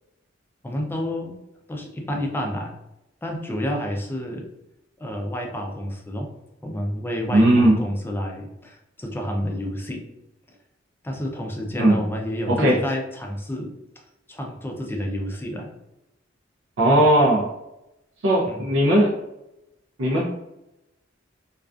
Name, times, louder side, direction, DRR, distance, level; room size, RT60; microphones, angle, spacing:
voice 1, 0.6-1.4 1.7-2.7 3.2-4.5 5.0-6.3 6.6-10.0 11.0-13.7 14.3-15.7 16.9-17.0 18.5-18.7, equal, 10° left, 1 dB, 0.3 m, -30 dB
voice 2, 7.3-7.8 11.8-12.0 12.5-12.8 16.8-17.5 18.2-19.1 20.0-20.2, right 1 dB, 85° right, -3 dB, 0.5 m, -17 dB
2.3 x 2.2 x 2.4 m, 0.90 s
head